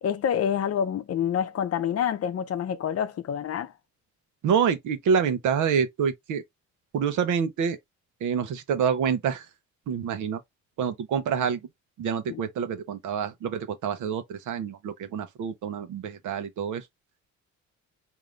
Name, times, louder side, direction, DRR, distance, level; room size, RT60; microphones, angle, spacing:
voice 1, 0.0-3.7 12.3-12.4, left 8 dB, 55° left, 0.6 m, -27 dB
voice 2, 4.4-6.4 6.9-7.8 8.2-9.5 9.9-10.4 10.8-11.6 12.0-16.9, right 7 dB, 80° right, 0.9 m, -27 dB
3.7 x 2.8 x 3.2 m
cardioid pair, 90°, 30 cm